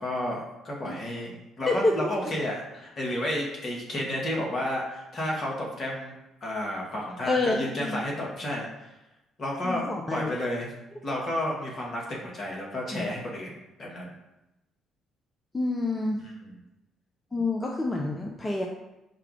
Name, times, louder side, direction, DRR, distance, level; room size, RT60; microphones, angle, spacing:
voice 1, 0.0-6.1 6.4-8.9 9.4-9.8 10.1-10.7 11.0-13.5 13.8-14.1 16.4-16.6, left 1 dB, 50° left, -2 dB, 1.5 m, -31 dB
voice 2, 1.7-2.1 7.2-8.0 9.6-10.3 12.9-13.1 15.5-16.2 17.3-18.7, left 2 dB, 25° left, 0 dB, 0.6 m, -28 dB
4.5 x 2.4 x 4.9 m, 0.96 s
hypercardioid pair, 50°, 0 cm